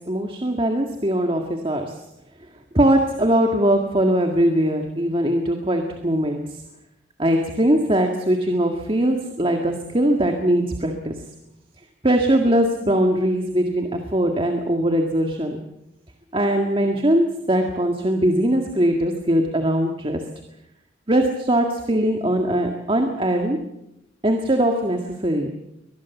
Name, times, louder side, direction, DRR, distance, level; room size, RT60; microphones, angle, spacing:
voice 1, 0.1-1.9 2.7-6.6 7.2-11.2 12.0-15.6 16.3-20.2 21.1-23.6 24.2-25.5, right 1 dB, 30° right, 3 dB, 1.9 m, -21 dB
23.0 x 20.5 x 7.2 m, 0.89 s
head